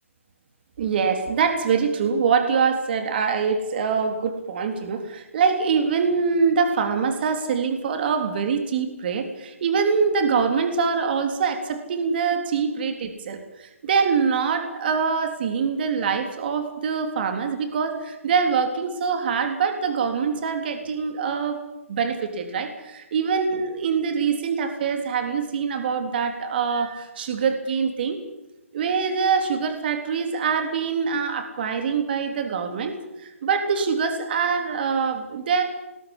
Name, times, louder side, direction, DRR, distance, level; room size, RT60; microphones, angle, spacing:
voice 1, 0.8-21.6 21.9-28.2 28.7-35.6, right 5 dB, 45° right, 6 dB, 3.6 m, -24 dB
21.0 x 21.0 x 7.4 m, 0.97 s
hypercardioid pair, 150°, 7 cm